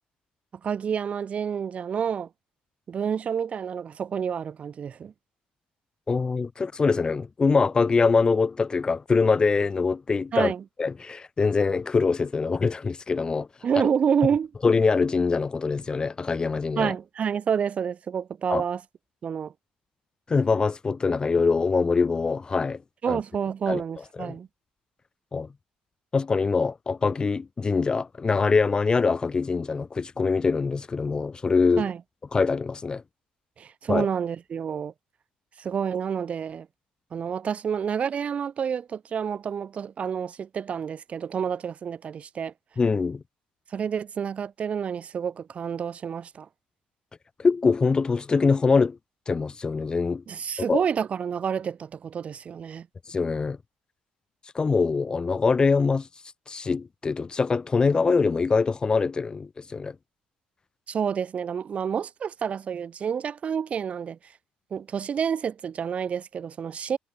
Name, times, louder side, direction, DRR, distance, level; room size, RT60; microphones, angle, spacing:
voice 1, 0.6-2.3 2.9-5.1 10.3-10.6 13.6-14.5 16.8-18.8 19.2-19.5 23.0-24.5 31.8-32.0 33.6-34.9 35.6-36.7 37.1-42.5 43.7-46.5 50.3-52.9 60.9-64.2 64.7-67.0, right 7 dB, 45° right, 1.4 m, -28 dB
voice 2, 6.1-10.5 10.8-13.5 14.6-16.9 18.5-18.6 20.3-22.8 23.1-23.2 23.7-23.8 24.2-24.4 25.3-25.5 26.1-31.9 32.3-33.0 33.9-34.1 42.8-43.2 47.4-49.0 49.3-50.2 50.7-50.8 53.1-53.6 54.5-56.1 56.5-59.9, left 4 dB, 30° left, 0.6 m, -23 dB
supercardioid pair, 80°, 3 cm